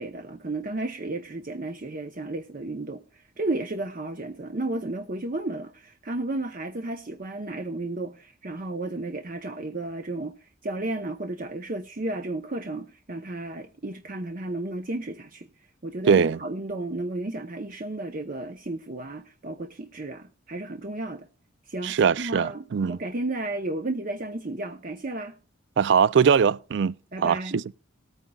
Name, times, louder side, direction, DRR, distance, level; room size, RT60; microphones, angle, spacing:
voice 1, 0.0-15.5 15.8-21.3 21.7-25.4 27.1-27.6, right 2 dB, 45° right, 0.8 m, -33 dB
voice 2, 16.1-16.4 21.8-23.0 25.8-26.9 27.2-27.4, right 6 dB, 60° right, 0.4 m, -21 dB
19.0 x 9.1 x 2.3 m
head